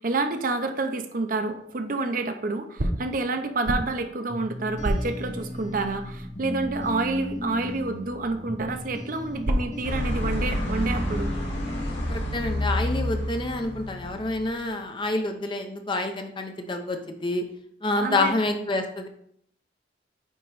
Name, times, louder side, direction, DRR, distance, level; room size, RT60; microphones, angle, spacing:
voice 1, 0.0-11.3 18.0-18.3, right 3 dB, 50° right, 7 dB, 0.6 m, -28 dB
sound 1, 1.5-2.2 2.8-5.9 8.6-10.1, right 1 dB, 75° right, 0.9 m, -32 dB
sound 2, 4.3-13.0, left 1 dB, 45° left, 1.2 m, -37 dB
sound 3, 9.8-14.9, left 1 dB, 85° left, 2.2 m, -29 dB
voice 2, 12.1-17.4 17.8-19.1, left 2 dB, 25° left, 5 dB, 0.6 m, -28 dB
9.0 x 3.0 x 4.7 m, 0.70 s
head